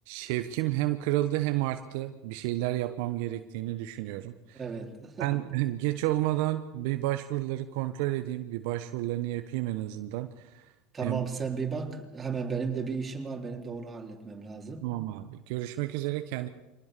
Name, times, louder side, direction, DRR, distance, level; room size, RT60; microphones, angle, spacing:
voice 1, 0.1-4.6 5.2-10.7 11.0-11.2 14.8-16.5, right 15 dB, 70° right, 8 dB, 1.1 m, -31 dB
voice 2, 4.5-5.4 10.9-14.9, right 5 dB, 25° right, 2 dB, 4.2 m, -34 dB
25.0 x 19.0 x 6.9 m, 1.1 s
hypercardioid pair, 90°, 0 cm